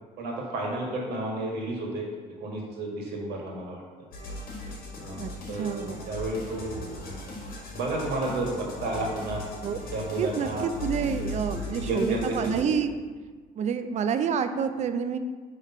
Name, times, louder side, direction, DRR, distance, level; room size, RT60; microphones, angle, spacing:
voice 1, 0.2-2.0 2.4-3.8 5.0-7.2 7.7-9.4 9.9-10.6 11.0-12.7, right 2 dB, 75° right, -1 dB, 1.6 m, -32 dB
sound 1, 4.1-12.6, left 1 dB, 60° left, 1.6 m, -38 dB
voice 2, 5.6-6.1 9.6-9.8 10.2-13.0 13.6-15.2, right 6 dB, 45° right, 9 dB, 0.4 m, -28 dB
5.8 x 3.2 x 5.3 m, 1.4 s
cardioid pair, 110°, 17 cm